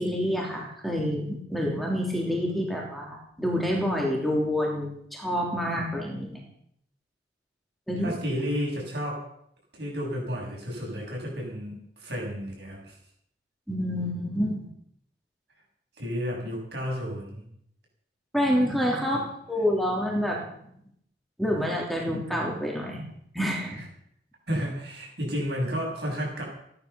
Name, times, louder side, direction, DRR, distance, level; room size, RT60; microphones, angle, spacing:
voice 1, 0.0-6.4 7.9-8.1 13.7-14.7 18.3-20.5 21.4-23.1 23.3-23.8, equal, ahead, -2 dB, 3.3 m, -27 dB
voice 2, 8.0-9.3 9.7-13.0 16.0-17.5 19.1-19.2 24.5-26.4, equal, 70° right, -2 dB, 7.9 m, -32 dB
16.0 x 11.5 x 7.0 m, 0.72 s
head